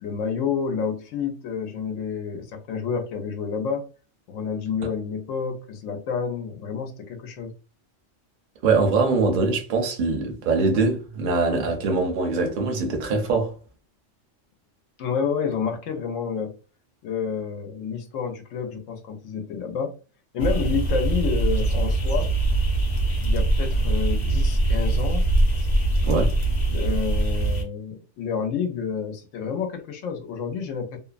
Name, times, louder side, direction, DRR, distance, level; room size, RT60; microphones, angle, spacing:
voice 1, 0.0-3.9 4.3-7.5 15.0-16.5 17.0-19.9 20.3-22.3 23.2-25.2 26.7-31.0, left 6 dB, 85° left, 0.9 m, -29 dB
voice 2, 8.6-13.5 26.0-26.3, right 3 dB, 50° right, 0.7 m, -22 dB
sound 1, 20.4-27.6, right 2 dB, 40° left, 0.7 m, -22 dB
2.7 x 2.0 x 2.4 m
omnidirectional pair, 1.3 m